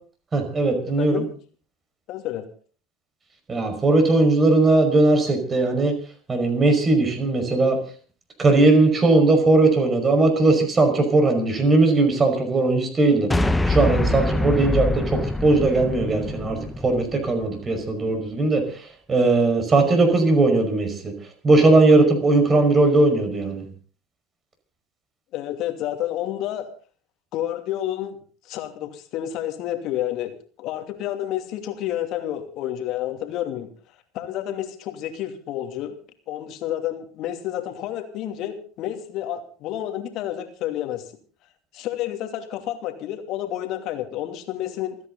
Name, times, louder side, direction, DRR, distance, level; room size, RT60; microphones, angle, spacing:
voice 1, 0.3-1.2 3.5-5.9 6.3-7.8 8.4-13.3 13.6-18.6 19.1-21.1 21.4-23.7, right 2 dB, 25° right, 6 dB, 5.3 m, -19 dB
voice 2, 0.9-1.2 2.1-2.4 25.3-26.7 27.3-28.2 28.4-33.7 34.1-36.0 36.3-41.0 41.7-45.0, left 12 dB, 50° left, 5 dB, 2.8 m, -30 dB
sound 1, 13.3-17.7, left 2 dB, 10° left, 1.1 m, -25 dB
28.0 x 9.8 x 4.0 m, 0.41 s
hypercardioid pair, 75°, 0 cm